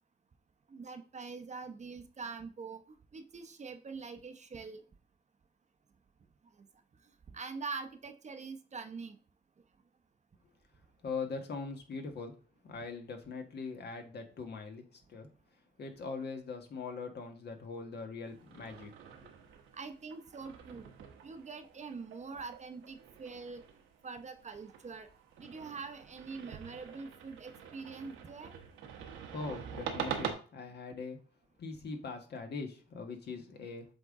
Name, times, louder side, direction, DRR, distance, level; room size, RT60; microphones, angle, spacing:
voice 1, 0.7-2.8 3.1-4.8 7.3-9.2 19.7-20.9 21.2-23.6 24.0-25.1 25.4-28.5, right 4 dB, 35° right, 8 dB, 0.8 m, -44 dB
voice 2, 11.0-12.3 12.6-15.3 15.8-18.9 29.3-31.2 31.6-33.9, left 4 dB, 55° left, 4 dB, 1.4 m, -41 dB
sound 1, 18.3-30.3, right 8 dB, 90° right, 1.2 m, -45 dB
7.8 x 3.7 x 3.7 m, 0.38 s
cardioid pair, 90°, 20 cm